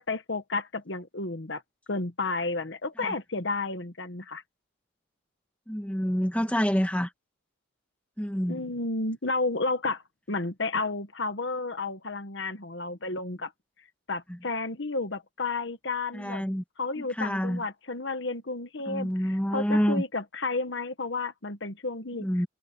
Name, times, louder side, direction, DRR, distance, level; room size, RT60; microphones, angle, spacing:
voice 1, 0.0-1.6 1.9-4.4 8.5-10.0 10.3-13.5 14.1-16.4 16.8-22.3, left 3 dB, 60° left, 1.3 m, -32 dB
voice 2, 5.7-7.1 8.2-8.6 16.1-16.6 17.2-17.6 18.9-20.0 22.2-22.5, equal, 5° left, 1.9 m, -27 dB
head